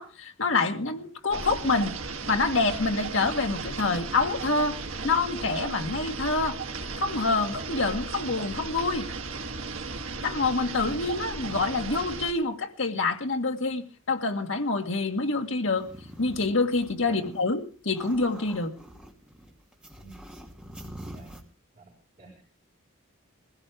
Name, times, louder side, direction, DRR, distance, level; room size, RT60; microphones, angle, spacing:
voice 1, 0.0-1.9 2.3-4.8 5.0-6.6 7.0-9.1 10.2-15.9 16.2-18.7, left 3 dB, 65° left, 1.7 m, -26 dB
sound 1, 1.3-12.3, right 3 dB, 70° right, 1.8 m, -35 dB
sound 2, 15.6-17.4 17.7-21.4, equal, 5° right, 2.3 m, -45 dB
voice 2, 17.0-17.2 20.0-20.2 21.1-21.3 21.8-21.9 22.2-22.4, right 3 dB, 35° right, 6.1 m, -47 dB
22.0 x 16.0 x 3.5 m
head